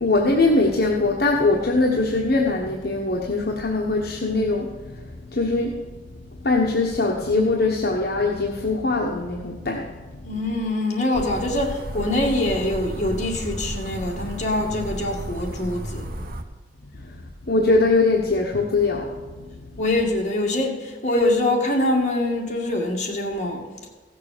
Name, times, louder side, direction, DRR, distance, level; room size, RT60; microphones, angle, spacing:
voice 1, 0.0-4.7 5.3-5.8 6.4-9.9 17.5-19.1, left 3 dB, 60° left, -1 dB, 1.2 m, -21 dB
voice 2, 10.2-16.3 19.8-23.6, left 1 dB, 45° left, -1 dB, 2.2 m, -24 dB
sound 1, 11.1-16.4, right 1 dB, 55° right, 1.0 m, -33 dB
15.5 x 6.7 x 6.8 m, 1.3 s
head